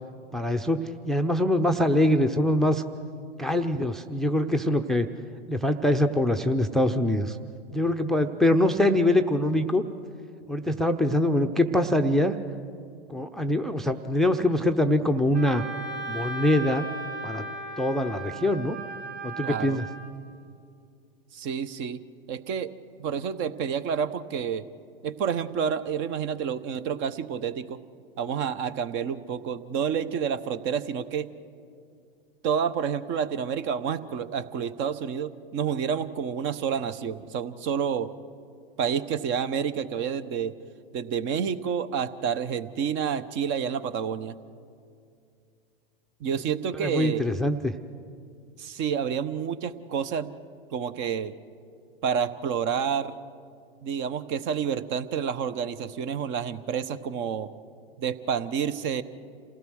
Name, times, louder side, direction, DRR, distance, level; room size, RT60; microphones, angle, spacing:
voice 1, 0.3-2.8 3.4-5.1 5.5-7.4 7.7-9.8 10.5-12.4 13.1-15.6 16.1-16.9 17.2-17.4 17.8-18.8 19.2-19.9 46.7-47.8, left 1 dB, ahead, 8 dB, 0.6 m, -24 dB
Wind instrument woodwind instrument, 15.3-20.0, right 2 dB, 85° right, 5.4 m, -36 dB
voice 2, 19.4-19.8 21.3-22.0 22.3-22.7 23.0-24.7 25.0-27.8 28.2-31.3 32.4-38.1 38.8-40.5 40.9-44.4 46.2-47.2 48.6-50.3 50.7-51.3 52.0-53.2 53.8-57.5 58.0-59.0, right 7 dB, 40° right, 14 dB, 0.9 m, -29 dB
27.5 x 16.5 x 6.4 m, 2.3 s
hypercardioid pair, 110°, 30 cm